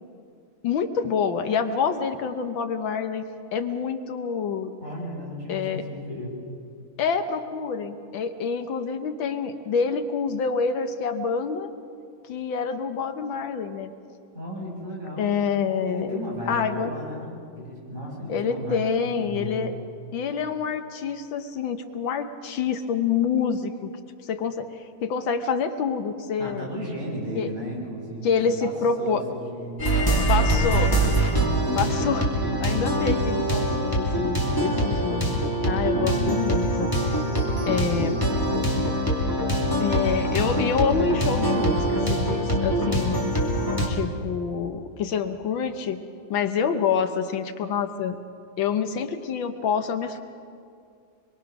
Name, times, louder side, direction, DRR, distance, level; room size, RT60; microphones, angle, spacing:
voice 1, 0.6-3.3 3.5-4.7 5.5-5.8 7.0-11.7 12.2-13.9 15.2-16.2 16.5-16.9 18.3-19.8 20.1-23.9 24.2-24.7 25.0-26.7 27.4-27.5 28.2-29.2 30.3-30.9 31.8-32.3 32.6-37.2 37.6-38.2 39.8-43.2 43.9-46.0 46.3-48.2 48.6-50.2, left 6 dB, 80° left, 8 dB, 1.7 m, -27 dB
voice 2, 4.8-6.4 14.3-15.4 15.8-19.7 26.4-28.7 29.0-29.8 34.0-34.9 37.2-38.6, equal, 25° right, -5 dB, 7.4 m, -35 dB
sound 1, 29.8-43.9, right 1 dB, 10° left, 2.7 m, -24 dB
25.0 x 22.5 x 6.0 m, 2.3 s
omnidirectional pair, 2.1 m